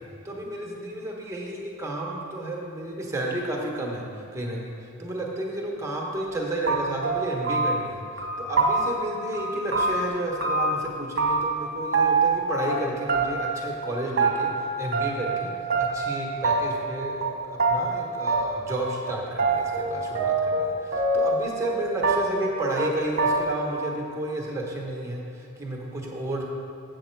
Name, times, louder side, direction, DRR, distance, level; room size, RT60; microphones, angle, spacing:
voice 1, 0.2-15.5 15.8-26.4, right 1 dB, 15° right, -2 dB, 1.0 m, -32 dB
sound 1, 6.3-6.4 6.7-7.9 8.2-9.1 9.3-10.8 11.2-11.7 11.9-12.8 13.1-13.6 13.8-14.6 14.9-15.4 15.7-16.1 16.4-16.9 17.2-17.3 17.6-17.8 18.3-18.8 19.0-20.6 20.9-21.8 22.0-22.5 22.8-22.9 23.2-23.7, right 3 dB, 50° right, 1.1 m, -24 dB
7.6 x 7.5 x 4.5 m, 2.6 s
head